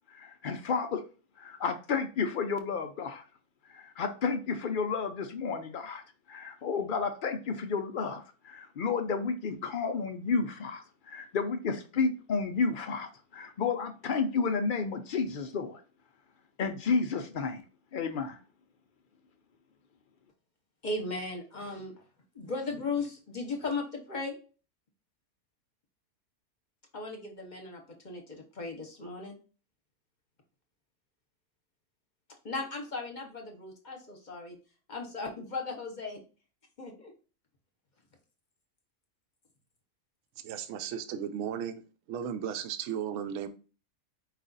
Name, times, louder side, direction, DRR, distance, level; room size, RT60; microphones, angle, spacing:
voice 1, 0.1-1.0 1.4-3.2 3.7-6.0 6.3-15.8 16.6-17.6 17.9-18.4, left 5 dB, 70° left, 6 dB, 0.4 m, -31 dB
voice 2, 20.8-21.9 22.3-24.4 26.9-29.3 32.4-34.6 34.9-36.2 36.8-37.1, left 3 dB, 40° left, 1 dB, 0.8 m, -37 dB
voice 3, 40.4-41.8 42.1-43.5, right 8 dB, 70° right, 8 dB, 0.9 m, -35 dB
4.9 x 2.4 x 3.9 m, 0.35 s
omnidirectional pair, 1.5 m